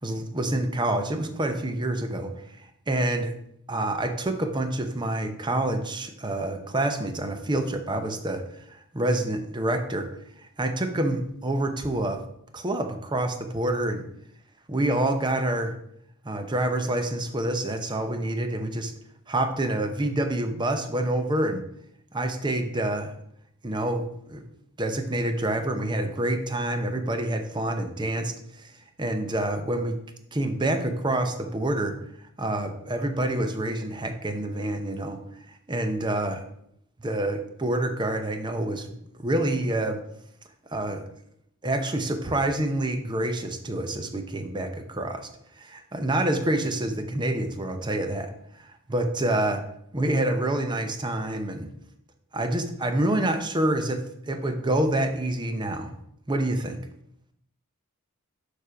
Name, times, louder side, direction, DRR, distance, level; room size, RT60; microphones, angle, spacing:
voice 1, 0.0-2.3 2.6-3.3 3.7-8.4 8.7-10.1 10.6-12.2 12.5-14.0 14.7-15.7 16.2-18.9 19.3-21.6 22.1-23.1 23.6-24.4 24.8-28.3 28.6-28.7 29.0-30.0 30.3-31.9 32.4-35.2 35.7-36.4 37.0-38.9 39.2-40.0 40.7-41.0 41.6-45.2 45.6-48.3 48.6-49.6 49.9-51.7 52.3-54.0 54.3-55.9 56.3-56.8, right 1 dB, 20° right, 6 dB, 0.8 m, -27 dB
7.1 x 4.9 x 5.0 m, 0.74 s
head